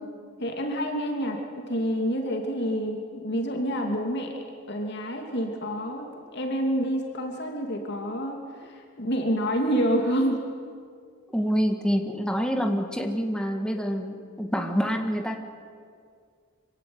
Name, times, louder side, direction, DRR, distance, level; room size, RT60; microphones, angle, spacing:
voice 1, 0.4-1.4 1.7-4.3 4.7-6.1 6.3-8.4 9.0-10.4, equal, 50° left, 2 dB, 2.7 m, -27 dB
voice 2, 11.3-15.4, equal, 5° left, 4 dB, 1.9 m, -26 dB
25.5 x 16.5 x 9.6 m, 2.2 s
head